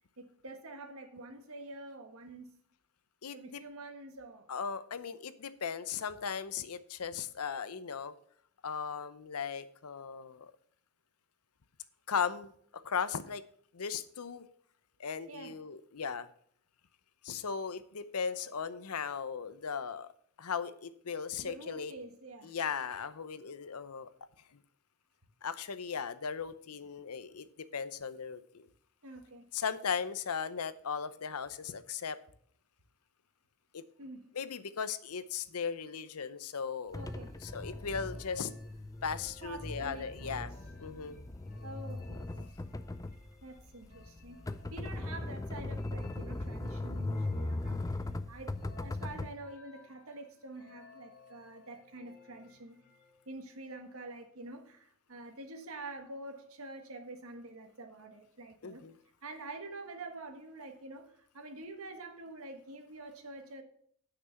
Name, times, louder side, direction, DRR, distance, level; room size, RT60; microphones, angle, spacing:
voice 1, 0.2-2.6 3.3-4.5 15.3-15.6 21.4-22.5 29.0-29.5 34.0-34.3 36.9-37.4 39.4-40.6 41.6-42.5 43.4-44.4 44.7-52.8 53.2-58.8 59.2-63.6, right 2 dB, 70° right, 1.5 m, -47 dB
voice 2, 3.2-3.6 4.5-8.1 8.6-10.5 12.1-12.5 12.8-13.4 13.7-14.4 15.0-16.3 17.2-20.1 20.4-21.9 22.4-24.1 25.4-27.5 27.7-28.7 29.5-32.2 33.7-33.8 34.3-37.0 37.4-38.5 39.0-40.5 40.8-41.2 58.6-58.9, left 6 dB, 90° left, 0.7 m, -37 dB
sound 1, 36.9-53.3, left 4 dB, 40° left, 2.5 m, -60 dB
sound 2, 36.9-49.3, left 2 dB, 15° left, 0.4 m, -39 dB
9.5 x 6.0 x 5.8 m
head